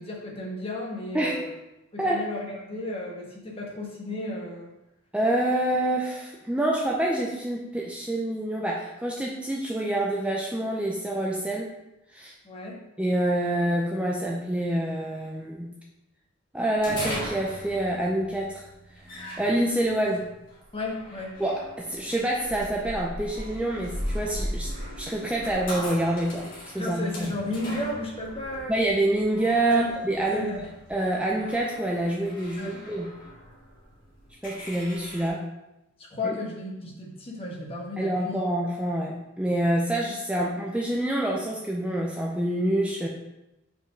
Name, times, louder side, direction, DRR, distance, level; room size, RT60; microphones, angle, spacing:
voice 1, 0.0-1.5 1.9-4.7 12.4-12.8 20.7-21.4 26.8-28.8 29.6-29.9 30.3-30.7 32.6-32.8 36.0-38.4, left 2 dB, 30° left, -2 dB, 1.3 m, -34 dB
voice 2, 5.1-11.7 12.1-12.3 13.0-15.7 16.5-18.7 19.4-20.3 21.4-26.5 26.7-27.3 28.7-30.5 30.9-33.1 34.4-35.4 36.2-36.3 38.0-43.1, right 1 dB, 5° right, -2 dB, 0.5 m, -27 dB
sound 1, 16.8-35.3, equal, 45° left, 1.9 m, -40 dB
sound 2, 23.3-31.9, right 1 dB, 60° right, 1.9 m, -44 dB
5.0 x 4.9 x 5.1 m, 0.92 s
head